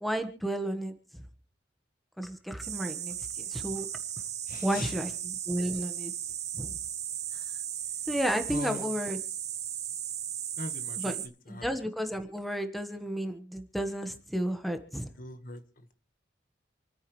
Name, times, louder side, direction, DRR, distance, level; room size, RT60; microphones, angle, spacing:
voice 1, 0.0-1.2 2.2-3.9 4.6-6.1 6.5-6.8 8.1-9.2 11.0-15.1, equal, ahead, 6 dB, 1.3 m, -33 dB
sound 1, 2.6-11.3, right 10 dB, 40° right, 1.1 m, -36 dB
voice 2, 4.5-4.9 8.5-8.9 10.6-11.0 11.5-11.7 15.2-15.6, left 3 dB, 50° left, 8 dB, 1.6 m, -40 dB
28.0 x 9.5 x 3.3 m, 0.37 s
head